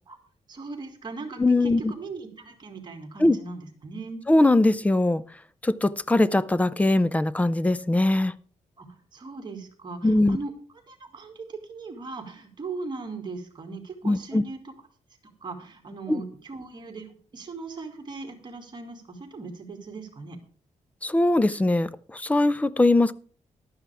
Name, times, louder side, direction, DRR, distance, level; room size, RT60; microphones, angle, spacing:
voice 1, 0.5-4.2 8.8-10.5 10.9-14.7 15.2-20.4, right 3 dB, 35° right, 2.4 m, -39 dB
voice 2, 1.4-1.8 3.2-3.4 4.3-5.2 5.6-8.3 10.0-10.4 14.0-14.4 16.1-16.2 21.0-23.1, left 2 dB, 10° left, 0.5 m, -21 dB
14.5 x 11.5 x 3.4 m
wide cardioid pair, 155°, 13 cm